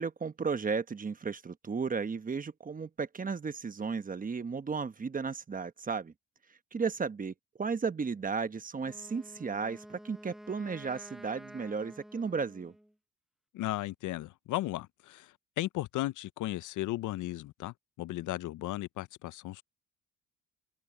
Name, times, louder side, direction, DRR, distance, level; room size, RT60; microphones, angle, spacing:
voice 1, 0.0-6.1 6.7-12.7, right 5 dB, 25° right, 1.1 m, -34 dB
Wind instrument woodwind instrument, 8.8-12.9, equal, ahead, 0.8 m, -50 dB
voice 2, 13.5-19.6, left 16 dB, 70° left, 0.6 m, -36 dB
cardioid pair, 95°, 32 cm